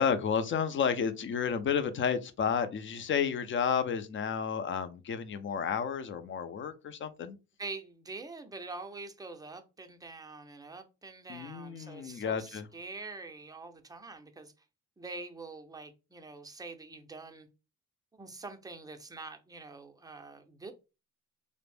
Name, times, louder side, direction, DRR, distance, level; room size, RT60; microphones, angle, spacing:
voice 1, 0.0-7.4 11.3-12.7, left 7 dB, 40° left, 0.4 m, -31 dB
voice 2, 7.6-14.5 15.0-17.5 18.1-20.7, right 3 dB, 10° right, 0.5 m, -45 dB
2.4 x 2.0 x 3.3 m
cardioid pair, 90°, 30 cm